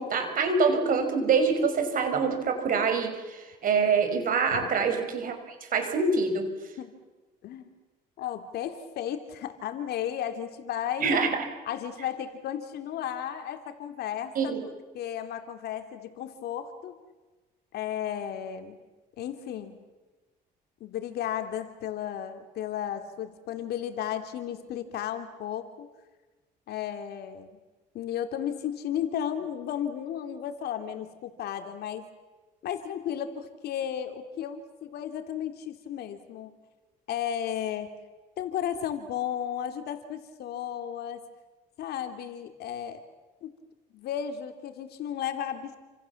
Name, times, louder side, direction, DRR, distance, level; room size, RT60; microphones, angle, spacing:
voice 1, 0.0-6.5 11.0-11.3 14.4-14.6, right 5 dB, 55° right, 6 dB, 5.8 m, -25 dB
voice 2, 8.2-11.2 11.6-14.5 14.9-17.0 17.7-18.8 19.2-19.8 20.8-25.9 26.7-27.5 27.9-32.1 32.6-36.5 37.1-37.9 38.4-41.2 41.8-43.0 43.4-43.5 43.9-45.8, left 9 dB, 70° left, 7 dB, 3.1 m, -34 dB
29.0 x 27.0 x 7.3 m, 1.2 s
cardioid pair, 110°, 17 cm